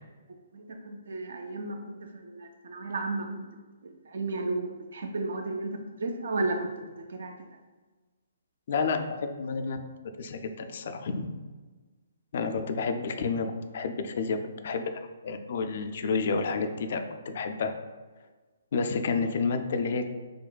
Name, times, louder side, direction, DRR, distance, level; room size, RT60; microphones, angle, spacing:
voice 1, 0.5-1.8 2.2-3.4 3.8-5.7 6.0-6.7 7.2-7.3, right 2 dB, 60° right, 5 dB, 0.4 m, -33 dB
voice 2, 8.7-9.8 10.2-11.3 12.3-13.5 13.7-14.4 14.6-14.8 15.2-17.7 18.7-20.1, left 4 dB, 50° left, 7 dB, 0.3 m, -30 dB
6.0 x 2.2 x 2.2 m, 1.3 s
figure-of-eight pair, 130°, 0 cm